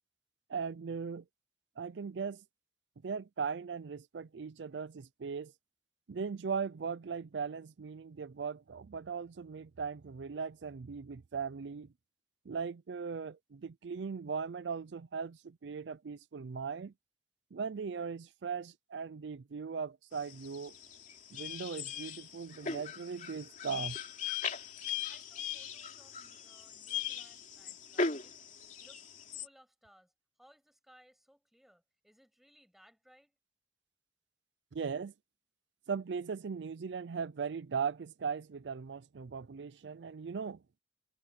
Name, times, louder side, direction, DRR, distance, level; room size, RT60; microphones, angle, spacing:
voice 1, 0.5-1.2 1.8-2.4 3.0-5.5 6.1-11.9 12.5-16.9 17.5-20.8 21.3-24.0 34.7-35.1 35.9-40.6, right 6 dB, 80° right, 0.5 m, -39 dB
sound 1, 20.1-29.5, left 5 dB, 45° left, 3.0 m, -39 dB
voice 2, 25.1-28.3 28.8-29.1 29.4-30.1 30.4-33.4, equal, ahead, 7.4 m, -64 dB
head